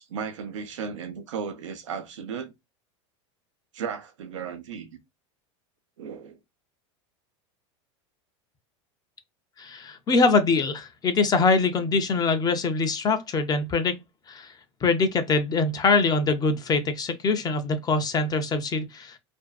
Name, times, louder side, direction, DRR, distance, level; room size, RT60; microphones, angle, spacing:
voice 1, 0.0-2.5 3.7-5.0 6.0-6.4, right 6 dB, 90° right, 0.6 m, -35 dB
voice 2, 9.6-14.0 14.3-14.5 14.8-19.2, left 4 dB, 25° left, 0.5 m, -23 dB
2.5 x 2.2 x 2.2 m
supercardioid pair, 110°, 16 cm